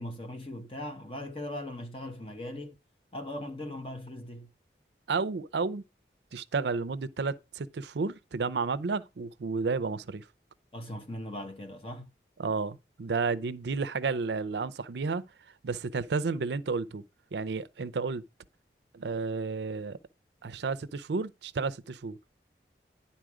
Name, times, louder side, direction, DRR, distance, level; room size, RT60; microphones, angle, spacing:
voice 1, 0.0-2.8 3.1-4.5 10.7-12.1, left 1 dB, 30° left, 1.2 m, -39 dB
voice 2, 5.1-5.8 6.3-10.2 12.4-15.2 15.6-17.0 17.3-18.2 18.9-20.0 20.4-22.2, right 4 dB, 80° right, 0.5 m, -31 dB
10.5 x 4.2 x 4.9 m
head